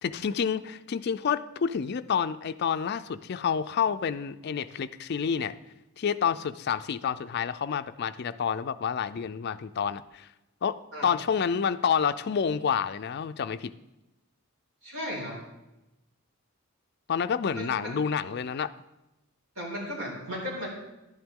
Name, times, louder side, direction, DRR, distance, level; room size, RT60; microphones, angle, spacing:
voice 1, 0.0-5.6 6.0-10.3 10.6-13.7 17.1-18.7, left 7 dB, 50° left, 12 dB, 0.3 m, -29 dB
voice 2, 14.8-15.4 17.5-17.9 19.6-20.7, equal, 80° right, -4 dB, 4.4 m, -35 dB
11.5 x 8.8 x 3.7 m, 0.97 s
head